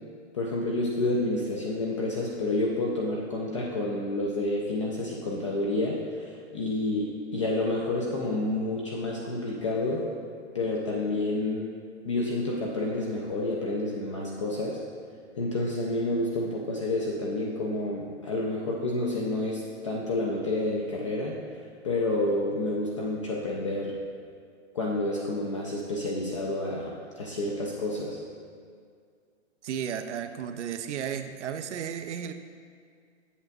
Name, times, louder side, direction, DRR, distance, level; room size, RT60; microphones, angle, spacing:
voice 1, 0.3-10.1 10.5-11.7 12.0-14.8 15.4-21.4 21.8-24.0 24.7-28.2, left 2 dB, 25° left, -3 dB, 0.4 m, -29 dB
voice 2, 29.6-32.3, right 8 dB, 70° right, 8 dB, 0.5 m, -34 dB
8.1 x 5.9 x 2.6 m, 2.1 s
hypercardioid pair, 145°, 36 cm